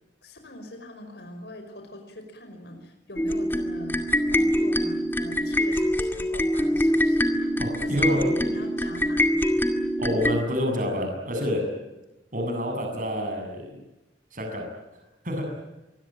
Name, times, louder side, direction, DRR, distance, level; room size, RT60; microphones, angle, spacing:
voice 1, 0.2-4.0 4.3-9.5, left 1 dB, 65° left, 5 dB, 5.5 m, -43 dB
sound 1, 3.2-10.4, equal, 10° left, 2.2 m, -24 dB
voice 2, 7.6-8.4 10.0-11.6 12.3-13.8 14.3-14.7 15.2-15.5, equal, 45° right, 4 dB, 7.5 m, -28 dB
25.5 x 21.5 x 9.0 m, 0.98 s
head